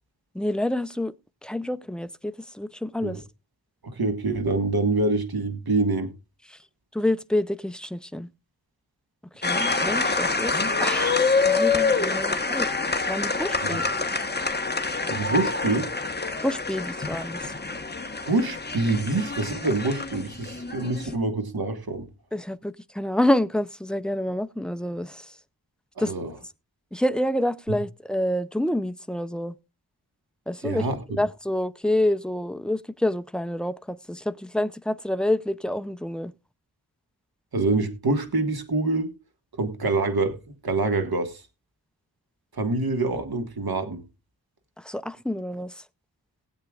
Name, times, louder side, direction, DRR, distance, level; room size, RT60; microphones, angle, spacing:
voice 1, 0.3-1.1 1.4-3.2 6.5-6.6 6.9-8.3 9.4-12.7 13.1-13.9 16.4-17.5 22.3-25.3 26.0-26.1 26.9-29.6 30.5-30.9 31.2-36.3 44.8-45.7, left 1 dB, ahead, 0.5 m, -28 dB
voice 2, 3.9-6.1 12.5-12.6 13.7-13.8 15.1-15.9 18.3-22.1 26.0-26.3 27.7-27.8 30.6-31.0 37.5-39.1 39.6-41.4 42.5-44.0, right 3 dB, 60° right, 1.6 m, -26 dB
sound 1, 9.4-21.1, left 4 dB, 25° left, 1.1 m, -26 dB
19.5 x 8.0 x 2.4 m
wide cardioid pair, 70°, 41 cm